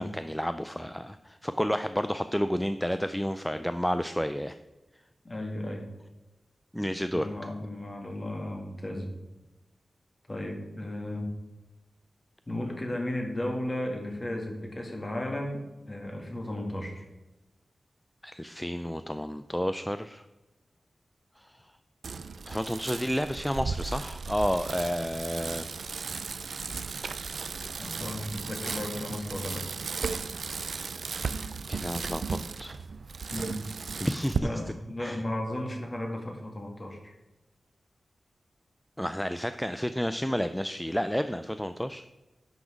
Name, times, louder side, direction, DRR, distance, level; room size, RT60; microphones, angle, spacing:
voice 1, 0.0-4.6 6.7-7.3 18.2-20.2 21.4-21.6 22.5-25.6 31.7-32.8 34.0-34.5 35.0-35.2 39.0-42.0, equal, 5° left, 10 dB, 0.4 m, -31 dB
voice 2, 5.2-5.9 6.8-9.1 10.3-11.3 12.5-17.1 27.8-29.7 33.3-33.6 34.4-37.1, left 1 dB, 30° left, 2 dB, 2.2 m, -35 dB
Bicycle, 22.0-34.4, right 5 dB, 75° right, 0.4 m, -35 dB
10.5 x 6.2 x 5.2 m, 1.0 s
wide cardioid pair, 130°, 0 cm